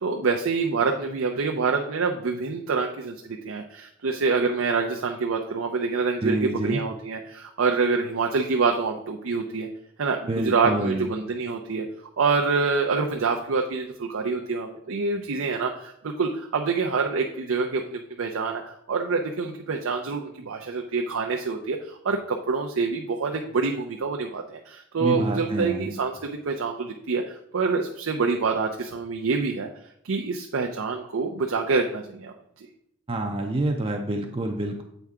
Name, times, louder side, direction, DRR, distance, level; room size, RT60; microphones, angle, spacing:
voice 1, 0.0-9.7 10.0-11.9 12.2-18.6 18.9-29.7 30.0-32.7, right 4 dB, 85° right, 2 dB, 0.6 m, -26 dB
voice 2, 6.2-6.8 10.3-11.1 25.0-26.0 33.1-34.8, right 1 dB, 25° right, 3 dB, 0.5 m, -27 dB
7.9 x 4.5 x 3.6 m, 0.72 s
head